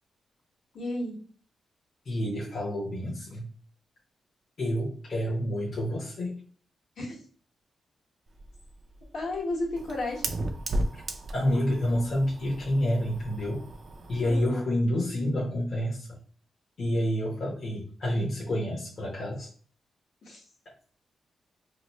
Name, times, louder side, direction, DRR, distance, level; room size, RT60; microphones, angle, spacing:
voice 1, 0.7-1.2 7.0-7.2 9.1-10.2 14.3-14.6 20.2-20.4, left 2 dB, 65° left, -3 dB, 1.3 m, -32 dB
voice 2, 2.0-3.5 4.6-6.4 10.9-11.0 11.3-13.6 14.1-16.2 16.8-19.5, equal, 40° left, -6 dB, 0.8 m, -28 dB
Fire, 8.3-14.5, right 1 dB, 40° right, 0.4 m, -36 dB
2.9 x 2.0 x 4.1 m, 0.43 s
wide cardioid pair, 180°, 0 cm